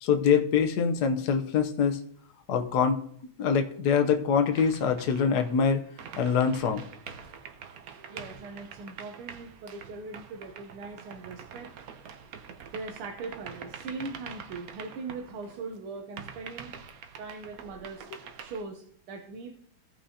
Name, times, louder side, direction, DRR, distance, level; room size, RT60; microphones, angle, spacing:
voice 1, 0.0-2.0 2.5-3.0 3.4-5.8 6.2-6.8, left 6 dB, 60° left, 6 dB, 1.2 m, -24 dB
sound 1, 4.5-15.8 16.2-18.6, right 7 dB, 65° right, 0.9 m, -45 dB
voice 2, 8.1-11.7 12.1-16.9 17.2-18.0 18.4-19.5, right 3 dB, 90° right, 3 dB, 1.7 m, -41 dB
17.0 x 6.0 x 2.8 m, 0.64 s
omnidirectional pair, 2.3 m